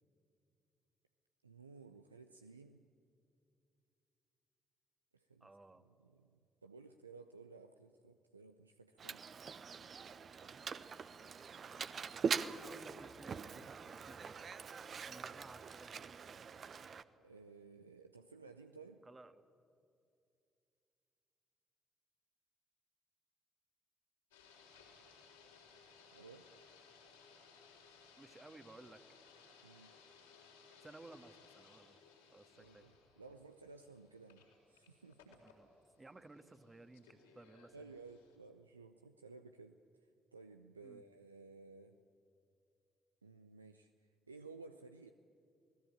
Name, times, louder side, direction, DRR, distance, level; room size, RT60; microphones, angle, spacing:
voice 1, 1.4-2.9 5.1-5.5 5.8-9.4 17.2-19.0 26.1-26.5 29.6-29.9 32.6-35.4 37.7-42.0 43.2-45.1, right 4 dB, 85° right, 7 dB, 0.5 m, -56 dB
voice 2, 5.4-5.9 11.8-12.0 12.5-14.4 15.0-16.0 19.0-19.4 28.2-29.0 30.8-32.0 32.3-32.8 35.4-35.7 36.0-37.9 40.8-41.0, right 2 dB, 20° right, 10 dB, 1.7 m, -57 dB
Mechanisms, 9.0-17.0, right 6 dB, 45° right, 0.9 m, -43 dB
sound 1, 24.3-38.4, left 5 dB, 80° left, 3.8 m, -63 dB
28.0 x 19.5 x 8.7 m, 2.5 s
figure-of-eight pair, 40°, 0 cm